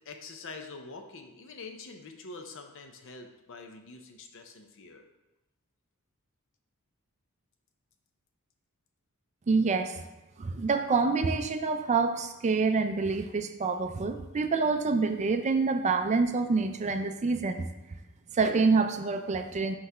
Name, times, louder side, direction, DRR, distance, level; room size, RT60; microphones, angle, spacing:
voice 1, 0.1-5.0, left 3 dB, 60° left, 4 dB, 0.7 m, -45 dB
voice 2, 9.5-10.0 10.4-17.7 18.3-19.8, right 4 dB, 30° right, 7 dB, 0.4 m, -27 dB
5.8 x 3.2 x 5.4 m, 1.0 s
head